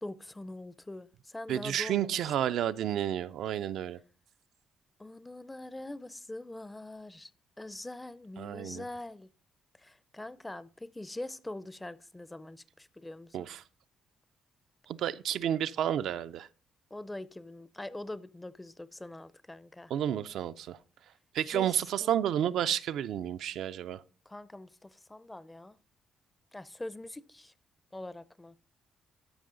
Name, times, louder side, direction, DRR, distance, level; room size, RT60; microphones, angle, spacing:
voice 1, 0.0-2.2 5.0-7.3 7.6-9.3 9.7-13.5 16.9-19.9 21.5-22.8 24.3-25.8 26.5-27.5 27.9-28.6, left 1 dB, 15° left, 0.5 m, -43 dB
voice 2, 1.5-4.0 8.4-8.8 13.3-13.6 14.9-16.5 19.9-20.8 21.3-24.0, right 10 dB, 75° right, 0.4 m, -31 dB
13.0 x 5.5 x 3.8 m
cardioid pair, 90°, 0 cm